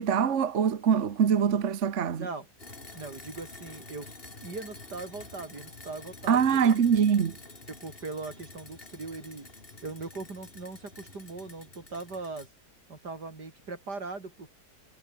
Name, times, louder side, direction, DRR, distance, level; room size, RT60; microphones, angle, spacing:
voice 1, 0.0-2.3 6.3-7.4, right 7 dB, 50° right, 1.4 m, -24 dB
sound 1, 2.6-12.5, left 2 dB, 35° left, 3.6 m, -48 dB
voice 2, 2.9-4.1 4.4-6.7 7.7-9.5 9.8-12.5 12.9-14.5, right 3 dB, 85° right, 4.7 m, -40 dB
omnidirectional pair, 1.7 m